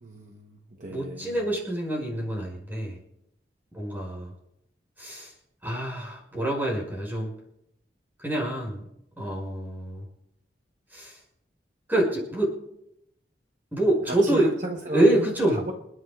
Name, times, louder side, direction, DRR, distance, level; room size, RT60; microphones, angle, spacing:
voice 1, 0.0-1.4 14.1-15.7, right 1 dB, 40° right, 2 dB, 1.0 m, -35 dB
voice 2, 0.9-3.0 3.7-4.3 5.0-5.3 5.6-7.3 8.2-8.9 9.2-10.1 10.9-11.2 11.9-12.6 13.7-14.5 14.9-15.6, right 1 dB, 10° right, -2 dB, 5.7 m, -26 dB
28.0 x 11.0 x 2.4 m, 0.79 s
head